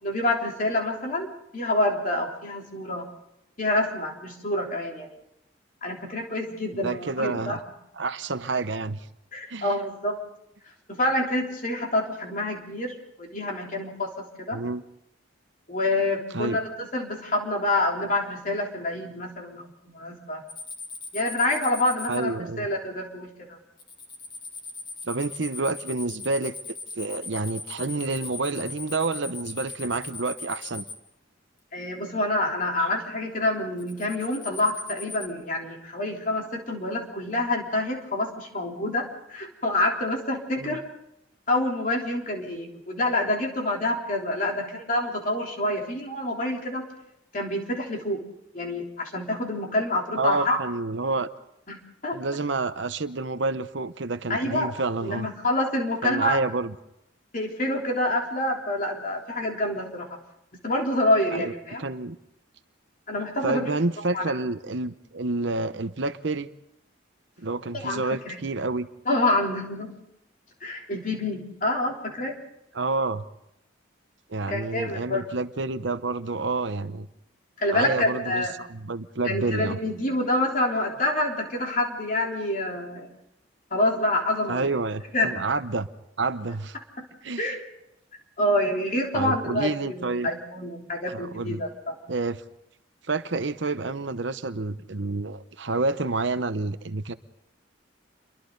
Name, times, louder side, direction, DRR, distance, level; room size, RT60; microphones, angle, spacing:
voice 1, 0.0-3.0 3.6-5.1 5.8-7.6 9.3-10.2 10.9-14.1 14.4-14.6 15.7-20.4 21.1-23.3 31.7-40.8 41.5-46.8 47.3-48.2 48.5-50.6 51.7-52.2 54.3-54.7 55.0-56.4 57.3-60.1 60.6-61.8 63.1-64.3 67.7-68.4 69.1-69.9 70.6-72.4 74.5-75.2 77.6-78.5 79.2-83.1 83.7-84.7 85.1-85.4 87.4-87.6 88.4-92.0, left 1 dB, 40° left, 0 dB, 3.6 m, -27 dB
voice 2, 6.8-7.6 8.0-9.0 9.5-9.7 14.5-14.8 16.3-16.6 22.1-22.7 25.1-30.8 40.6-40.8 50.2-51.3 52.1-55.3 56.0-56.7 61.3-61.5 61.8-62.2 63.4-66.5 67.4-68.9 72.7-73.2 74.3-77.1 77.7-79.8 84.5-85.9 86.2-86.7 87.2-87.5 89.1-90.3 91.1-91.6 92.1-92.4 93.1-97.1, right 3 dB, 65° right, 12 dB, 0.8 m, -29 dB
sound 1, 20.5-22.2 23.8-31.0 33.8-35.3, left 3 dB, 25° left, 2.1 m, -39 dB
29.0 x 23.0 x 4.0 m, 0.81 s
head